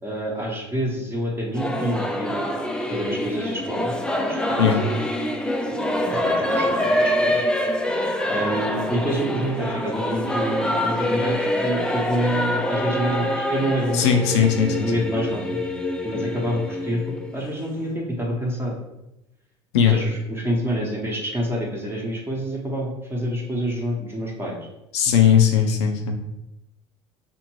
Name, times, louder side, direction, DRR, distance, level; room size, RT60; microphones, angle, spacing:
voice 1, 0.0-2.3 2.9-5.0 5.7-7.4 8.3-14.4 14.8-15.6 16.0-18.7 19.9-24.6, right 1 dB, 15° right, -2 dB, 0.9 m, -27 dB
Singing / Musical instrument, 1.5-17.9, left 1 dB, 5° left, 0.4 m, -25 dB
voice 2, 13.9-14.9 19.7-20.0 24.9-26.2, left 8 dB, 80° left, 3 dB, 0.4 m, -18 dB
2.5 x 2.5 x 3.0 m, 0.91 s
hypercardioid pair, 75°, 15 cm